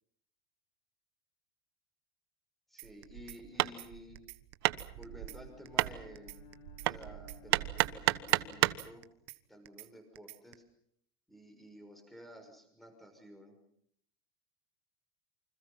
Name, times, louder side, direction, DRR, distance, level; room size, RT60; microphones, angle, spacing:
voice 1, 2.7-4.3 4.9-6.4 6.8-9.0 9.5-10.6 11.3-13.6, equal, ahead, 5 dB, 6.1 m, -53 dB
sound 1, 2.8-3.4 3.7-3.9 4.2-5.4 5.7-5.9 6.2-7.4 7.7-7.9 8.2-9.4 9.7-9.9 10.2-10.5, right 22 dB, 50° right, 1.3 m, -50 dB
Hammer, 2.8-8.9, right 18 dB, 85° right, 1.2 m, -33 dB
Bowed string instrument, 4.9-9.5, left 6 dB, 45° left, 4.0 m, -57 dB
28.5 x 26.0 x 5.7 m, 0.70 s
supercardioid pair, 160°, 13 cm